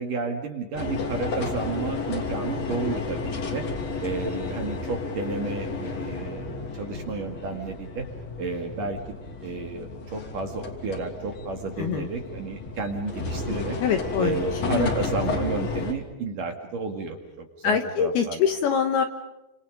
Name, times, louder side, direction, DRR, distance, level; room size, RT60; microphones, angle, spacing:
voice 1, 0.0-3.7 4.0-6.4 6.7-8.1 8.4-13.8 14.2-18.4, right 4 dB, 50° right, 4 dB, 3.0 m, -32 dB
sound 1, 0.8-15.9, left 3 dB, 40° left, 3.5 m, -32 dB
voice 2, 11.8-12.1 13.8-14.9 17.6-19.0, left 7 dB, 70° left, 6 dB, 2.6 m, -24 dB
29.5 x 27.0 x 5.3 m, 0.98 s
omnidirectional pair, 5.7 m